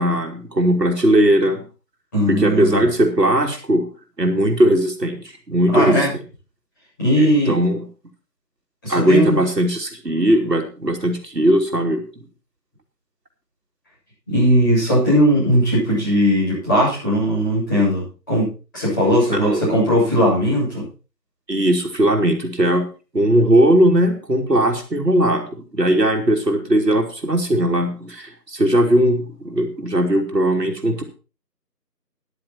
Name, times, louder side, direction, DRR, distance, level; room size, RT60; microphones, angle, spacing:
voice 1, 0.0-1.6 2.3-3.9 4.2-6.1 7.2-7.9 8.9-12.0 19.3-19.7 21.5-22.9 23.1-25.5 25.7-31.0, right 1 dB, 70° right, 3 dB, 3.1 m, -18 dB
voice 2, 2.1-2.9 5.7-6.1 7.0-7.6 8.8-9.4 14.3-20.9, equal, 10° left, -11 dB, 7.6 m, -18 dB
13.5 x 11.0 x 4.5 m, 0.33 s
figure-of-eight pair, 175°, 50 cm